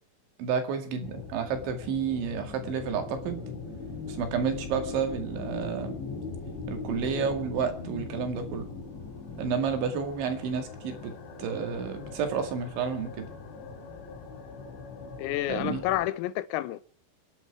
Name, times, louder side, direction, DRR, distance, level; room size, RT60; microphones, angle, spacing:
voice 1, 0.4-3.4 4.1-6.0 6.7-8.7 9.4-13.3 15.5-15.8, right 6 dB, 65° right, 4.3 m, -31 dB
sound 1, 1.0-16.1, left 4 dB, 65° left, 5.3 m, -40 dB
voice 2, 15.2-16.8, left 14 dB, 90° left, 3.6 m, -29 dB
28.0 x 11.0 x 4.8 m
omnidirectional pair, 6.0 m